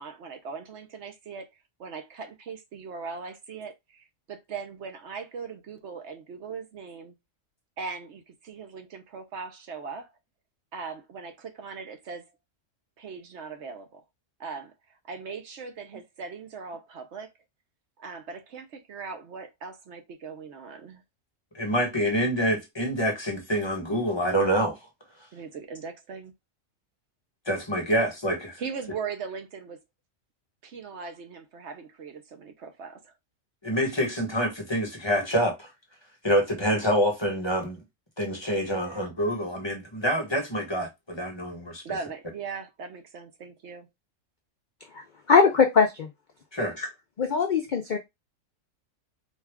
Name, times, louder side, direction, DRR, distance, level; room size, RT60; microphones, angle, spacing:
voice 1, 0.0-7.1 7.8-10.1 10.7-12.3 13.0-14.0 14.4-17.3 18.0-21.0 25.3-26.3 28.0-28.1 28.6-29.8 30.6-33.1 38.7-39.2 41.8-43.9, right 5 dB, 65° right, 1.0 m, -39 dB
voice 2, 21.5-24.8 27.5-28.6 33.6-35.7 36.2-37.8 38.2-41.8 46.5-46.8, equal, 20° left, 1.1 m, -26 dB
voice 3, 44.9-46.1 46.8-46.9 47.2-48.0, left 5 dB, 55° left, 0.5 m, -21 dB
4.4 x 2.3 x 3.5 m
omnidirectional pair, 1.3 m